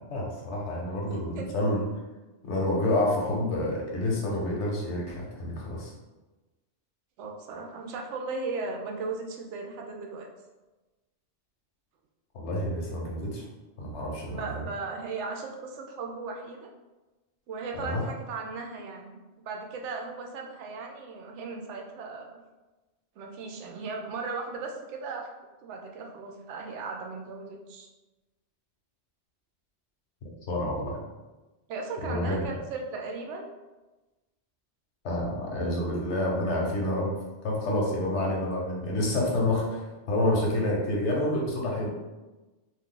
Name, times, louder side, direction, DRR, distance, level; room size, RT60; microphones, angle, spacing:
voice 1, 0.1-1.8 2.4-5.9 12.3-13.4 13.8-14.6 17.7-18.0 30.2-31.0 32.0-32.6 35.0-37.2 37.4-41.9, left 1 dB, 80° left, -2 dB, 1.1 m, -28 dB
voice 2, 7.2-10.3 14.3-16.7 17.5-19.2 19.4-22.4 23.2-25.3 25.6-27.9 31.7-33.5, right 4 dB, 85° right, 2 dB, 0.9 m, -37 dB
2.6 x 2.4 x 3.7 m, 1.1 s
omnidirectional pair, 1.2 m